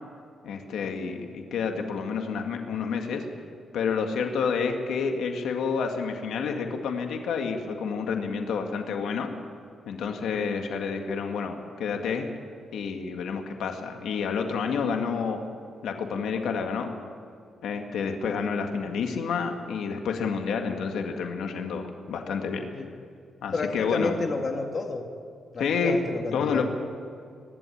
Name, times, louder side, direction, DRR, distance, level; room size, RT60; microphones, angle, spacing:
voice 1, 0.4-3.2 3.7-9.3 9.9-12.3 12.7-15.4 15.8-16.9 17.6-22.7 23.4-24.2 25.6-26.0 26.3-26.6, left 5 dB, 85° left, 4 dB, 2.0 m, -29 dB
voice 2, 23.5-25.1 25.5-26.6, left 3 dB, 40° left, 3 dB, 2.1 m, -30 dB
23.5 x 12.0 x 9.9 m, 2.3 s
cardioid pair, 135°, 0 cm